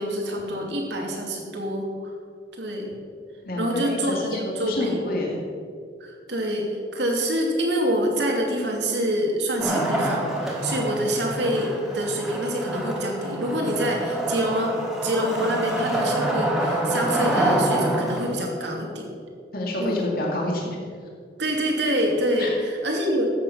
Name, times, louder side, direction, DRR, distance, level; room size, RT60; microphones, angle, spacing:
voice 1, 0.0-2.1 2.6-2.9 3.6-4.9 6.0-14.7 15.0-19.1 19.8-20.1 21.4-23.3, equal, 70° right, 0 dB, 2.6 m, -26 dB
voice 2, 3.4-5.4 19.5-20.8 22.4-22.5, left 1 dB, 50° left, -2 dB, 2.2 m, -28 dB
Wood, 9.6-18.5, right 1 dB, ahead, 2.0 m, -26 dB
13.0 x 8.7 x 5.7 m, 2.2 s
head